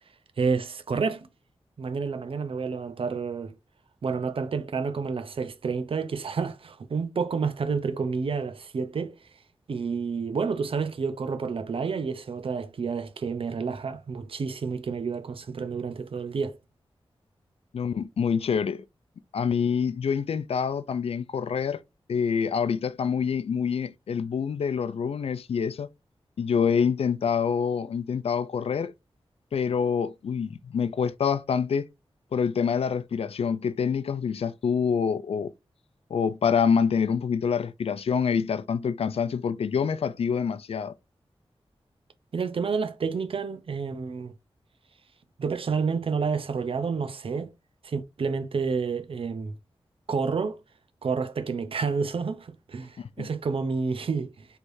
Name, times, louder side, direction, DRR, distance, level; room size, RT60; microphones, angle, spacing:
voice 1, 0.4-1.3 1.8-3.5 4.0-9.2 9.7-16.6 42.3-44.3 45.4-47.5 47.8-49.5 50.1-50.6 51.0-54.5, right 5 dB, 65° right, 0.6 m, -29 dB
voice 2, 17.7-18.8 19.3-21.8 22.1-25.9 26.4-28.9 29.5-31.9 32.3-35.5 36.1-40.9 53.2-53.3, left 6 dB, 80° left, 0.4 m, -26 dB
4.7 x 3.3 x 2.6 m
wide cardioid pair, 105°, 10 cm